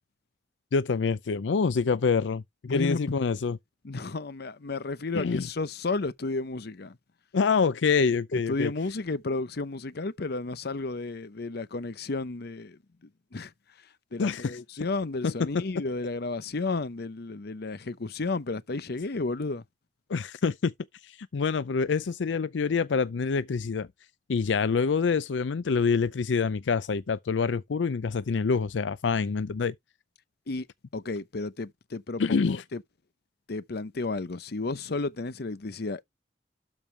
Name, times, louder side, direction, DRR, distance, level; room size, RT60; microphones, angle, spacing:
voice 1, 0.7-3.6 5.1-5.4 7.3-8.7 14.2-14.6 15.2-15.6 20.1-20.7 21.0-23.9 24.3-29.7 32.2-32.6, left 5 dB, 90° left, 0.5 m, -26 dB
voice 2, 2.7-3.0 3.8-7.0 8.3-12.8 13.3-13.5 14.1-19.6 30.5-30.7 30.9-32.8 33.5-36.0, left 3 dB, 60° left, 0.8 m, -32 dB
12.5 x 5.2 x 3.2 m
head